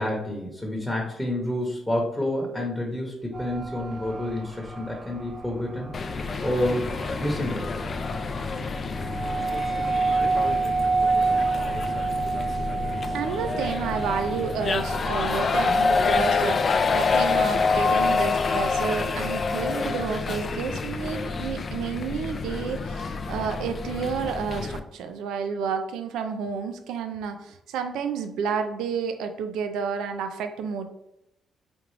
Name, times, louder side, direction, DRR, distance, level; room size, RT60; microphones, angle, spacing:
voice 1, 0.0-6.9 7.2-7.8, left 1 dB, 10° left, -1 dB, 0.9 m, -29 dB
sound 1, 3.3-16.6, right 4 dB, 40° right, 0.6 m, -29 dB
sound 2, 5.9-24.8, left 4 dB, 40° left, 0.3 m, -27 dB
voice 2, 13.1-30.9, right 6 dB, 85° right, 7 dB, 0.4 m, -30 dB
5.1 x 2.4 x 3.2 m, 0.84 s
cardioid pair, 90°, 0 cm